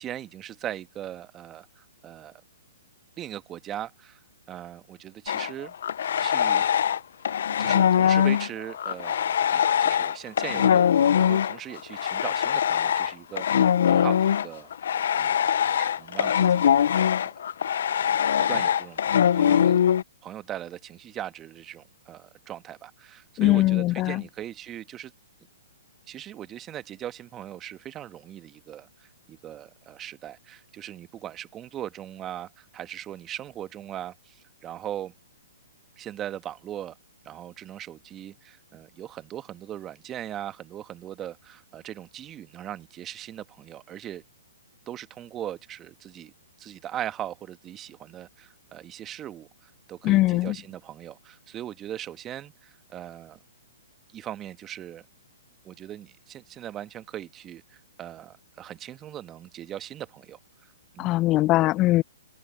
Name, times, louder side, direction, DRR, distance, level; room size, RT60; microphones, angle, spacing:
voice 1, 0.0-2.4 3.2-4.2 4.5-5.7 6.2-6.7 7.6-14.7 15.1-15.4 15.7-17.3 18.4-19.0 19.3-19.7 20.2-25.1 26.1-35.1 36.0-36.9 37.2-44.2 44.9-46.3 46.6-53.4 54.1-55.0 55.6-60.4 60.9-61.1 61.6-61.7, right 11 dB, 20° right, 1.6 m, -39 dB
sound 1, 5.3-7.0 7.2-20.0, left 9 dB, 60° left, 0.7 m, -22 dB
voice 2, 23.4-24.2 50.0-50.6 61.0-62.0, left 17 dB, 30° left, 0.7 m, -21 dB
hypercardioid pair, 125°, 0 cm